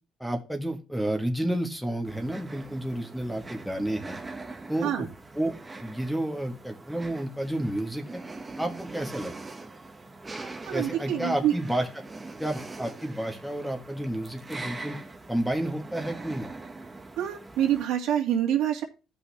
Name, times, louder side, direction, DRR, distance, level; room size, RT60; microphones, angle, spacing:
voice 1, 0.2-4.2 4.7-5.1 5.3-8.2 8.6-9.3 10.7-12.0 12.4-15.0 15.3-16.5, right 1 dB, ahead, 1.5 m, -31 dB
sound 1, 2.0-17.8, right 3 dB, 15° right, 1.2 m, -42 dB
voice 2, 10.6-11.5 17.2-18.8, right 10 dB, 80° right, 2.2 m, -26 dB
15.0 x 5.6 x 3.4 m
cardioid pair, 115°, 0 cm